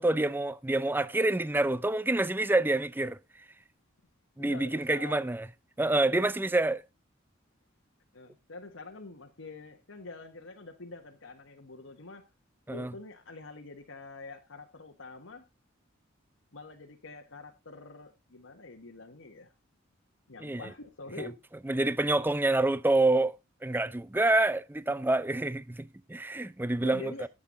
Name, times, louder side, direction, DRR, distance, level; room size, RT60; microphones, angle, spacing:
voice 1, 0.0-3.2 4.4-5.5 5.8-6.8 12.7-12.9 20.4-20.6 21.2-21.3 21.6-23.4 23.6-27.3, right 2 dB, 10° right, 0.5 m, -27 dB
voice 2, 4.4-5.3 6.0-6.3 8.1-12.3 12.7-15.5 16.5-19.5 20.3-21.4 26.7-27.2, left 3 dB, 75° left, 1.4 m, -46 dB
12.0 x 8.0 x 3.9 m
head